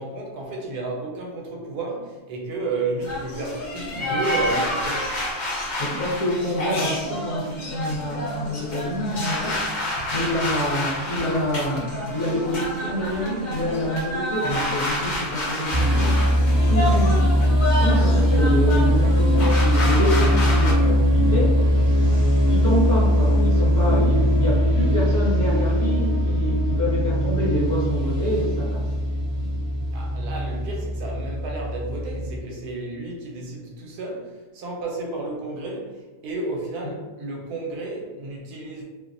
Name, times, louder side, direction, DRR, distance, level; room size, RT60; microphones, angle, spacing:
voice 1, 0.0-5.1 20.8-21.1 29.9-38.8, right 2 dB, 85° right, -1 dB, 1.1 m, -32 dB
sound 1, 3.0-20.7, left 1 dB, 75° left, 0.4 m, -28 dB
voice 2, 5.8-9.7 10.1-17.2 17.8-20.8 21.1-21.5 22.5-28.9, equal, 55° left, -8 dB, 0.8 m, -27 dB
sound 2, 15.7-32.4, equal, 40° right, 0.4 m, -20 dB
2.7 x 2.0 x 2.5 m, 1.2 s
omnidirectional pair, 1.6 m